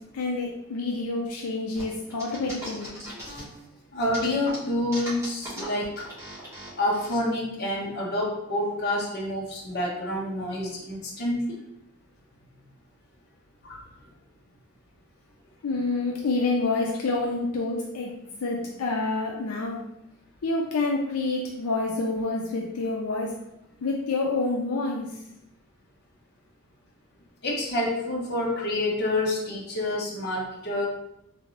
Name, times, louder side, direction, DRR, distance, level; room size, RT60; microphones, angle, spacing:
voice 1, 0.1-2.9 15.6-18.1 18.4-19.8 20.4-23.3 23.8-25.2, left 3 dB, 80° left, 0 dB, 0.4 m, -28 dB
sound 1, 1.8-3.6 4.0-7.2, equal, 15° right, 1.4 m, -39 dB
voice 2, 3.9-6.1 6.8-11.6 13.6-13.8 27.4-30.9, left 1 dB, 50° left, -3 dB, 0.9 m, -28 dB
3.5 x 2.7 x 3.2 m, 0.85 s
head